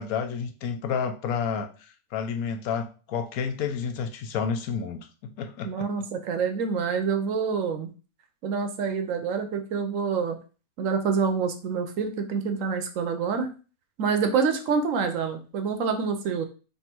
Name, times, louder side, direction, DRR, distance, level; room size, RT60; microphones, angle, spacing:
voice 1, 0.0-5.9, left 6 dB, 75° left, 7 dB, 1.0 m, -30 dB
voice 2, 5.6-7.9 8.4-10.4 10.8-13.5 14.0-16.5, right 5 dB, 70° right, 7 dB, 0.9 m, -27 dB
3.4 x 2.6 x 4.3 m, 0.36 s
omnidirectional pair, 1.6 m